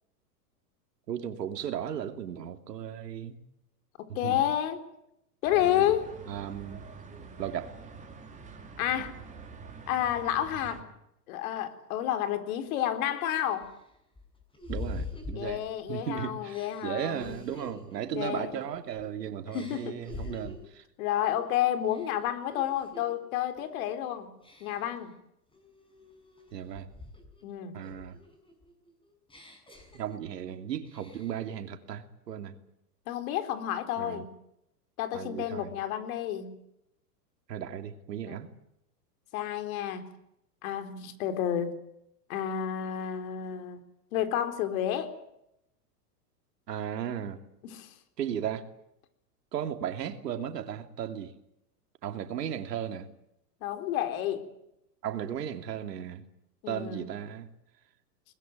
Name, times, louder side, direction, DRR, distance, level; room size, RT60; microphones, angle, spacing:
voice 1, 1.1-3.4 4.2-4.5 5.6-5.9 6.3-6.8 7.4-7.8 14.7-15.6 15.9-20.8 26.5-26.9 27.7-28.2 29.9-32.6 34.0-34.2 35.1-35.7 37.5-38.5 46.7-47.4 48.2-48.7 49.5-51.3 52.0-53.1 55.0-56.2 56.7-57.5, right 9 dB, 80° right, 8 dB, 2.9 m, -36 dB
voice 2, 4.0-4.8 5.4-6.1 8.8-9.1 9.9-10.8 11.3-13.7 15.4-17.4 18.1-18.6 19.5-20.0 20.3-20.4 21.0-24.3 24.6-25.1 27.4-27.9 33.1-34.3 35.0-36.5 38.3-38.4 39.3-40.1 40.6-41.7 42.3-43.8 44.1-45.2 47.6-47.9 53.6-54.5 56.6-57.1, left 11 dB, 60° left, 8 dB, 4.1 m, -30 dB
sound 1, 5.4-10.8, right 5 dB, 15° right, 4.8 m, -46 dB
sound 2, 12.6-12.7 13.3-16.0 16.5-19.1 19.5-20.7 21.2-21.5 21.8-23.1 23.6-23.9 24.4-25.0 25.5-27.4 27.8-30.5 30.8-31.5, left 2 dB, 10° left, 7.0 m, -45 dB
23.0 x 20.5 x 9.2 m, 0.81 s
hypercardioid pair, 125°, 48 cm